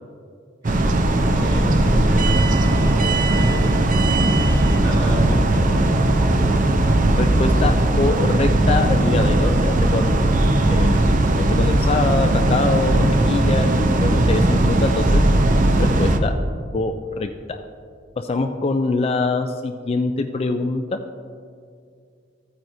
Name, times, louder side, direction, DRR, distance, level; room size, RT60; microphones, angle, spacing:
voice 1, 0.6-3.8 4.3-5.6, equal, 20° right, -3 dB, 2.0 m, -33 dB
sound 1, 0.6-16.2, right 1 dB, 45° right, 0.6 m, -18 dB
voice 2, 7.2-11.0 11.3-15.2 15.8-16.3 16.7-17.6 18.2-21.0, left 3 dB, 30° left, 6 dB, 0.3 m, -24 dB
14.0 x 9.0 x 2.6 m, 2.3 s
head